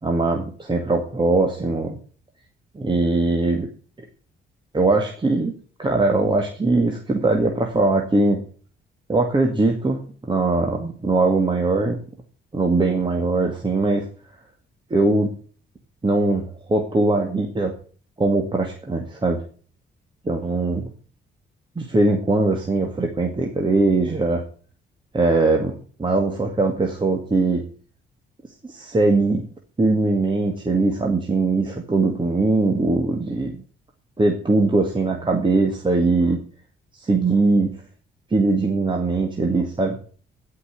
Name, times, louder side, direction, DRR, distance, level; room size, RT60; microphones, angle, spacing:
voice 1, 0.0-2.0 2.7-3.7 4.7-5.5 5.8-8.4 9.1-10.0 10.3-12.0 12.5-14.1 14.9-15.3 16.0-17.7 18.2-19.4 20.3-20.9 21.8-24.4 25.1-25.7 26.0-27.6 28.7-29.4 29.8-33.6 34.2-36.4 37.0-37.8 38.3-40.0, right 3 dB, 25° right, 2 dB, 2.0 m, -21 dB
16.0 x 5.7 x 8.1 m, 0.43 s
cardioid pair, 90°, 20 cm